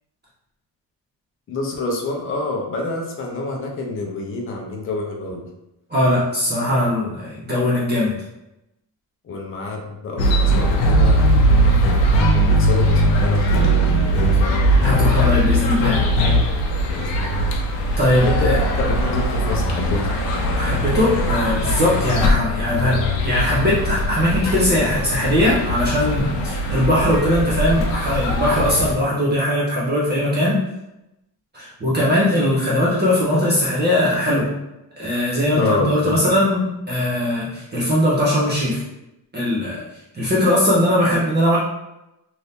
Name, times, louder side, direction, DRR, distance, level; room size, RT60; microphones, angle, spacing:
voice 1, 1.5-5.5 9.2-11.8 12.3-13.9 16.8-17.6 18.2-20.1 35.5-36.3, left 3 dB, 30° left, -1 dB, 0.5 m, -27 dB
voice 2, 5.9-8.2 14.8-16.1 18.0-18.6 20.6-30.6 31.5-34.5 35.0-38.8 39.3-39.8 40.1-41.6, left 1 dB, 20° right, -7 dB, 0.6 m, -20 dB
sound 1, 10.2-16.4, left 2 dB, 85° left, 1.0 m, -19 dB
sound 2, 10.2-29.0, right 2 dB, 65° left, 0.7 m, -22 dB
2.7 x 2.6 x 3.4 m, 0.91 s
cardioid pair, 165°, 47 cm